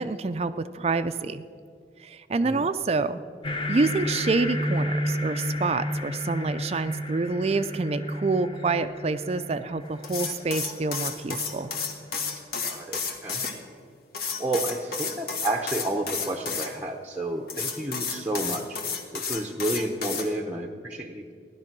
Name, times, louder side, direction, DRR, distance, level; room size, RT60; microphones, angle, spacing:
voice 1, 0.0-1.4 2.0-3.2 3.7-11.7, right 3 dB, 35° right, 11 dB, 0.4 m, -27 dB
sound 1, 3.4-12.4, equal, 30° left, 0.9 m, -32 dB
sound 2, 10.0-13.5 14.1-16.7 17.5-20.2, left 5 dB, 60° left, 1.7 m, -31 dB
voice 2, 12.6-13.4 14.4-18.8 19.1-21.3, right 1 dB, 10° right, 1 dB, 0.7 m, -31 dB
15.5 x 11.5 x 6.0 m, 2.3 s
head